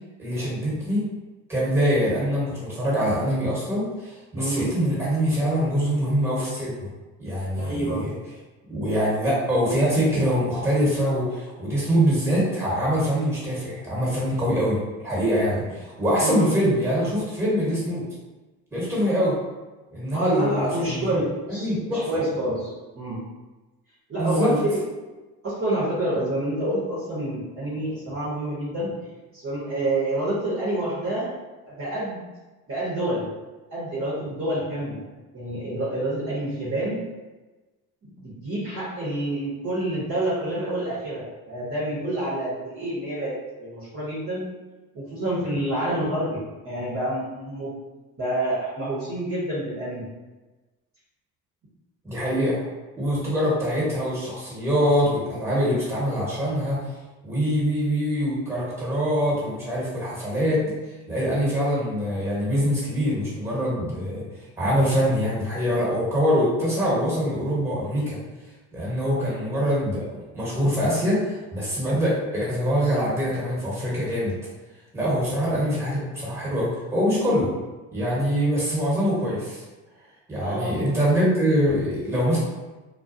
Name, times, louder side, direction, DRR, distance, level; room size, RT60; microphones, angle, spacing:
voice 1, 0.2-1.1 1.5-6.7 7.2-8.1 8.7-18.0 18.7-19.4 19.9-21.1 21.6-22.1 24.2-24.5 52.0-52.6 53.0-56.8 57.2-60.6 61.1-64.2 64.6-68.2 68.7-70.1 70.3-74.3 74.9-77.5 77.9-79.6 80.3-82.4, equal, 5° right, -6 dB, 1.3 m, -24 dB
voice 2, 4.3-4.7 7.6-8.0 15.5-15.6 16.2-16.6 20.1-23.2 24.1-24.8 25.4-28.9 29.3-31.3 31.7-32.2 32.7-33.3 33.7-35.0 35.3-37.0 38.0-44.5 44.9-47.7 48.2-50.1 72.1-72.2 75.6-75.8 80.4-80.8, right 1 dB, 30° right, -8 dB, 0.9 m, -28 dB
2.3 x 2.3 x 2.6 m, 1.2 s
hypercardioid pair, 70°, 42 cm